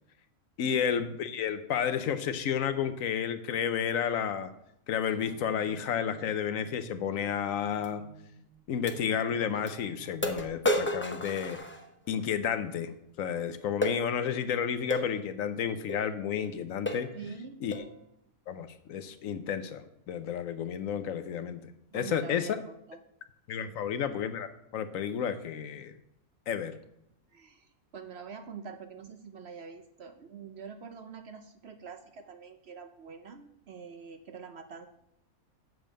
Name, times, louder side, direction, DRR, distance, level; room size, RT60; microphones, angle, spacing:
voice 1, 0.6-4.5 4.9-8.0 8.7-11.6 12.1-17.1 17.6-17.8 18.5-22.6 23.5-25.9 26.5-26.8, left 8 dB, 70° left, 11 dB, 1.0 m, -31 dB
sound 1, 5.0-11.6, right 3 dB, 85° right, 4.1 m, -53 dB
sound 2, 7.8-7.9 8.9-9.0 9.7-9.8 10.2-12.2 13.8-14.0 14.9-15.1 15.9-16.0 16.4-16.6 16.9-17.2 17.7-17.9, left 1 dB, 15° left, 0.3 m, -32 dB
voice 2, 17.1-17.6 21.9-23.0 23.6-23.8 27.3-34.9, right 6 dB, 60° right, 8 dB, 0.8 m, -45 dB
7.7 x 5.2 x 7.4 m, 0.79 s
omnidirectional pair, 1.5 m